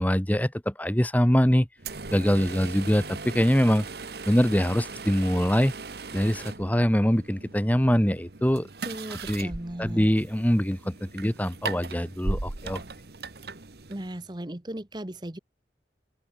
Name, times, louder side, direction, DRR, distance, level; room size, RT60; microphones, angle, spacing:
voice 1, 0.0-1.7 2.1-3.8 4.2-5.7 6.1-8.7 9.3-9.5 9.8-12.8, equal, 10° left, 1.5 m, -23 dB
sound 1, 1.8-14.3, right 3 dB, 65° right, 1.4 m, -38 dB
voice 2, 8.8-10.1 13.9-15.4, right 1 dB, 25° right, 1.1 m, -37 dB
open air
head